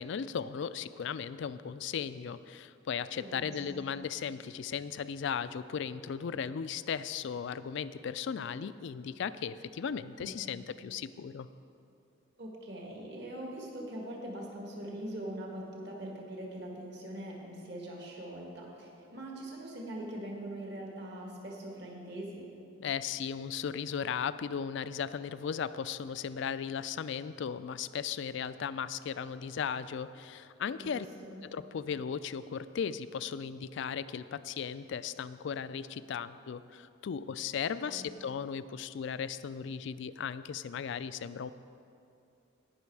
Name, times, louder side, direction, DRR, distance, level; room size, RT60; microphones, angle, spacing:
voice 1, 0.0-11.5 22.8-31.1 31.5-41.5, left 7 dB, 60° left, 14 dB, 0.3 m, -36 dB
voice 2, 3.2-3.8 10.2-10.4 12.4-22.5 30.8-31.4 37.8-38.1, right 1 dB, 55° right, -1 dB, 1.8 m, -42 dB
18.0 x 6.2 x 4.7 m, 2.6 s
head